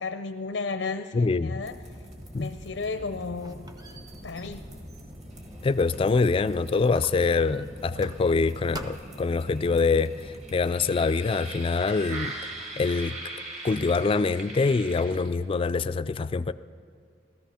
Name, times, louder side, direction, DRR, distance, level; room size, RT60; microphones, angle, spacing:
voice 1, 0.0-1.8 2.3-3.6 4.2-4.6, left 4 dB, 90° left, 9 dB, 0.5 m, -33 dB
voice 2, 1.1-1.6 2.3-2.5 5.6-10.1 10.5-12.3 12.8-13.2 13.6-16.5, left 4 dB, 30° left, 14 dB, 0.3 m, -24 dB
sound 1, 1.6-15.5, right 1 dB, 40° right, 2.1 m, -42 dB
Squeak, 2.7-6.5 6.9-8.4 8.7-9.3, right 1 dB, 20° right, 0.7 m, -46 dB
15.5 x 14.0 x 5.7 m, 2.1 s
head